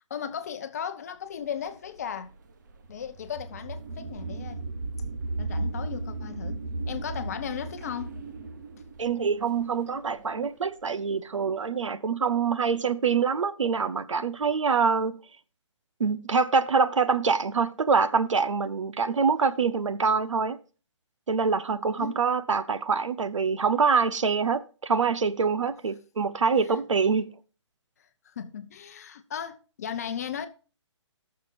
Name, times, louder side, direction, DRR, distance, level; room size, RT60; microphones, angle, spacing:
voice 1, 0.1-2.3 2.9-4.6 5.4-8.2 19.4-19.5 22.0-22.2 26.7-26.8 28.2-30.5, left 8 dB, 30° left, 0.8 m, -36 dB
sound 1, 1.5-10.5, right 2 dB, 40° right, 1.0 m, -35 dB
voice 2, 9.0-15.2 16.0-20.6 21.3-27.3, right 5 dB, 90° right, 1.0 m, -25 dB
18.0 x 6.7 x 2.6 m
hypercardioid pair, 170°, 16 cm